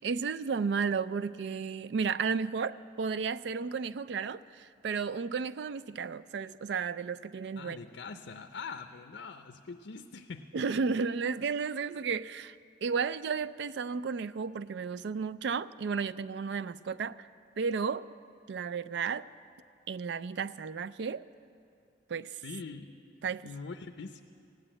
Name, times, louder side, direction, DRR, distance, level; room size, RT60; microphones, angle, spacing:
voice 1, 0.0-7.8 10.5-12.6 12.8-17.3 17.6-18.1 18.5-19.3 19.9-21.3 22.1-22.4 23.2-23.5, right 5 dB, 70° right, 16 dB, 0.3 m, -33 dB
voice 2, 7.6-10.5 22.4-22.9 23.2-24.2, left 4 dB, 80° left, 7 dB, 0.5 m, -43 dB
16.5 x 9.1 x 8.7 m, 2.5 s
head